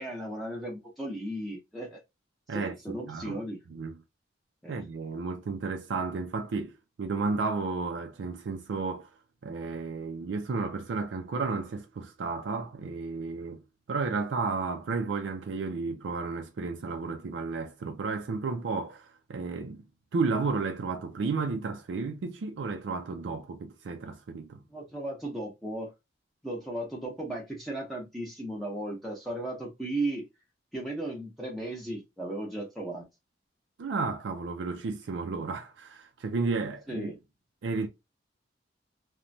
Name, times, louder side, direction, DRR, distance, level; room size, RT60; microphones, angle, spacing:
voice 1, 0.0-2.0 2.5-3.6 4.6-4.8 24.7-25.9 26.4-30.3 30.7-33.1 36.9-37.2, right 1 dB, ahead, 0.6 m, -35 dB
voice 2, 2.5-3.4 3.7-4.0 4.7-9.1 9.4-13.6 13.9-19.8 20.1-24.6 33.8-37.1 37.6-37.9, right 4 dB, 85° right, 0.4 m, -32 dB
3.0 x 2.2 x 2.5 m
head